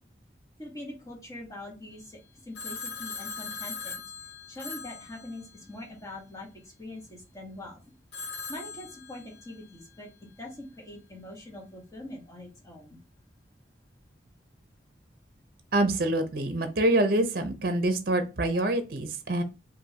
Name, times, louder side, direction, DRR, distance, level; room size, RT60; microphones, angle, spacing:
voice 1, 0.6-4.0 4.5-6.5 6.8-7.9 8.5-10.1 10.4-13.0, left 1 dB, 20° left, -1 dB, 1.4 m, -43 dB
Telephone, 2.5-5.8 8.1-9.6, left 5 dB, 70° left, 0.8 m, -40 dB
voice 2, 15.7-19.4, right 1 dB, 55° right, 8 dB, 0.7 m, -26 dB
5.3 x 2.6 x 2.8 m, 0.28 s
head